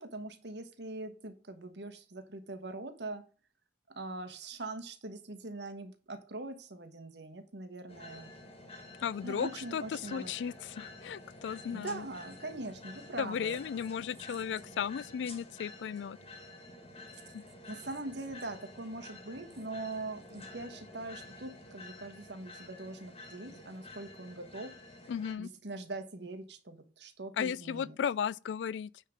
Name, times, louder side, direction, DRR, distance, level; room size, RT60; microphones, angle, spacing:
voice 1, 0.0-3.2 3.9-8.3 9.2-10.3 11.6-13.6 17.7-24.7 25.4-28.0, right 2 dB, 70° right, 1.3 m, -42 dB
sound 1, 7.9-25.3, left 2 dB, 35° left, 1.8 m, -50 dB
voice 2, 9.0-12.1 13.2-16.2 17.3-17.4 25.1-25.5 27.4-28.9, left 7 dB, 80° left, 0.3 m, -35 dB
9.2 x 3.6 x 6.3 m
head